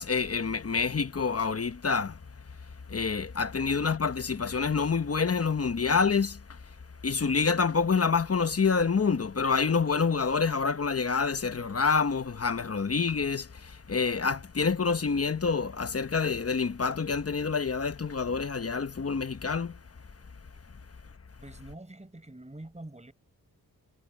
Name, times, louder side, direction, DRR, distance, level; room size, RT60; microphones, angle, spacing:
voice 1, 0.0-2.2 2.9-6.6 7.0-19.8, left 5 dB, 40° left, 1.1 m, -27 dB
voice 2, 21.4-23.1, right 1 dB, 20° right, 5.3 m, -45 dB
wide cardioid pair, 90°, 36 cm